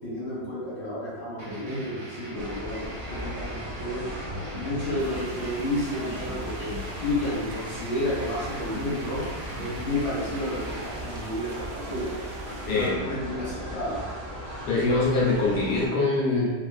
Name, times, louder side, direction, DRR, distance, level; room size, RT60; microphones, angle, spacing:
voice 1, 0.0-4.0 4.5-6.7 7.0-9.2 9.6-12.1 12.7-14.0, left 1 dB, 40° left, -10 dB, 1.5 m, -31 dB
sound 1, 1.4-11.0, right 1 dB, 65° right, 1.4 m, -41 dB
sound 2, 2.3-15.9, equal, 35° right, 1.0 m, -38 dB
sound 3, 5.0-12.9, right 1 dB, 90° right, 0.7 m, -43 dB
voice 2, 12.7-13.0 14.7-16.5, left 3 dB, 70° left, -4 dB, 1.1 m, -23 dB
3.0 x 2.4 x 2.3 m, 1.4 s
omnidirectional pair, 1.9 m